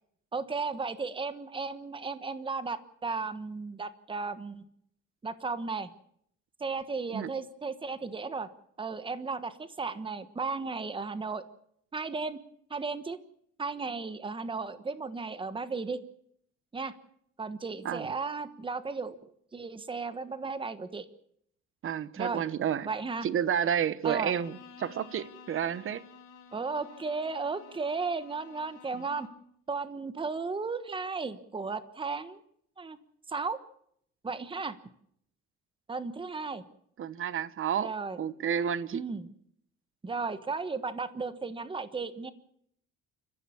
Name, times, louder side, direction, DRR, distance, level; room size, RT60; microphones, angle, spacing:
voice 1, 0.3-4.6 5.2-5.9 6.6-8.5 8.8-11.4 11.9-12.4 12.7-13.2 13.6-16.0 16.7-16.9 17.4-19.1 19.5-21.1 22.2-22.4 22.8-23.3 24.0-24.3 26.5-29.3 29.7-32.4 32.8-33.0 33.3-33.6 34.2-34.8 35.9-36.6 37.8-38.2 38.9-39.3 40.0-42.3, right 4 dB, 15° right, 1.2 m, -35 dB
voice 2, 21.8-22.9 23.2-26.0 28.9-29.0 37.0-37.9 38.2-39.0, right 8 dB, 40° right, 1.0 m, -30 dB
Bowed string instrument, 24.0-29.5, left 6 dB, 75° left, 4.0 m, -52 dB
28.5 x 15.0 x 7.1 m
cardioid pair, 165°, 32 cm